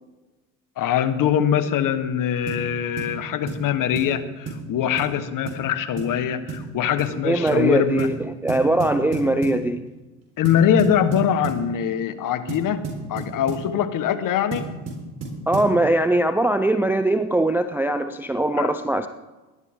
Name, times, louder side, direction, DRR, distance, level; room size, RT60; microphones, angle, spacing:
voice 1, 0.8-8.1 10.4-14.7 18.6-18.7, left 9 dB, 45° left, 11 dB, 1.4 m, -23 dB
sound 1, 2.5-2.7 3.0-3.1 3.5-3.7 3.9-4.1 4.5-4.7 5.0-5.1 5.5-5.6 6.0-6.2 6.5-6.7 7.0-7.2 7.5-7.6 8.0-8.2 8.5-9.6 10.4-11.6 12.5-13.7 14.5-15.8, right 4 dB, 35° right, 4.2 m, -32 dB
voice 2, 7.2-9.8 15.5-19.1, right 1 dB, 5° right, 9 dB, 0.4 m, -21 dB
18.5 x 12.5 x 3.7 m, 1.2 s
supercardioid pair, 95°, 43 cm